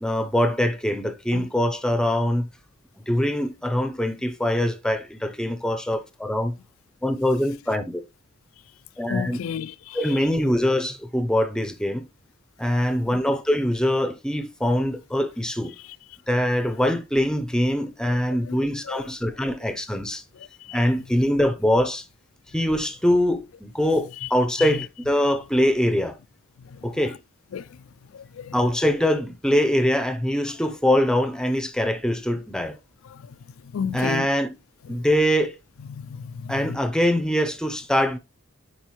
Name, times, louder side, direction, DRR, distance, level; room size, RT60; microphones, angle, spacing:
voice 1, 0.0-2.5 3.1-6.5 7.0-8.0 9.0-9.4 9.9-12.1 12.6-15.7 16.3-20.2 20.7-22.1 22.5-26.2 26.8-27.2 28.5-32.8 33.9-34.5 34.9-35.6 36.5-38.2, equal, 5° left, 0.6 m, -23 dB
voice 2, 9.1-10.2 13.1-13.2 18.5-18.6 18.9-19.0 20.6-20.8 24.2-24.3 24.6-24.8 27.0-27.1 27.5-27.8 28.1-28.6 33.1-33.3 33.7-34.3 34.9-35.0 35.9-36.8, left 7 dB, 80° left, 0.4 m, -32 dB
9.7 x 4.4 x 3.1 m
head